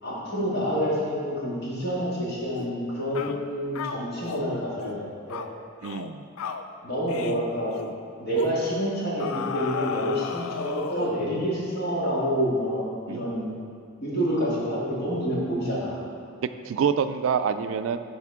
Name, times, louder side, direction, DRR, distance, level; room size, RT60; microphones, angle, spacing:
voice 1, 0.0-5.4 6.8-7.7 8.2-13.5 14.0-16.0, equal, 55° left, -6 dB, 2.0 m, -28 dB
sound 1, 2.5-2.8 3.1-3.4 3.7-4.5 4.8-5.0 5.3-5.5 5.8-6.1 6.4-6.7 7.1-7.4 7.7-7.9 8.4-8.6 9.2-11.2, left 6 dB, 85° left, 0.4 m, -34 dB
voice 2, 5.8-6.2 13.1-13.2 16.4-18.0, right 7 dB, 70° right, 10 dB, 0.3 m, -26 dB
11.0 x 4.4 x 3.6 m, 2.2 s
head